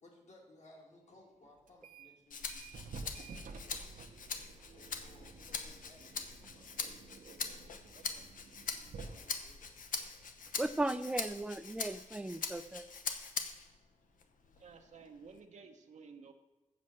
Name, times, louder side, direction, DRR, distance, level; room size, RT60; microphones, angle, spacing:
voice 1, 0.0-4.0 4.7-7.2 9.0-10.6, left 2 dB, 60° left, -1 dB, 2.4 m, -62 dB
sound 1, 1.7-2.2 2.5-10.9, right 4 dB, 85° right, 0.9 m, -52 dB
Rattle (instrument), 2.3-13.8 14.2-15.4, left 5 dB, 80° left, 0.9 m, -42 dB
voice 2, 7.9-8.3 14.6-16.3, right 5 dB, 60° right, 4 dB, 0.7 m, -54 dB
voice 3, 10.6-12.9, right 2 dB, 5° right, 12 dB, 0.3 m, -36 dB
7.6 x 6.5 x 7.4 m, 1.2 s
wide cardioid pair, 155°, 14 cm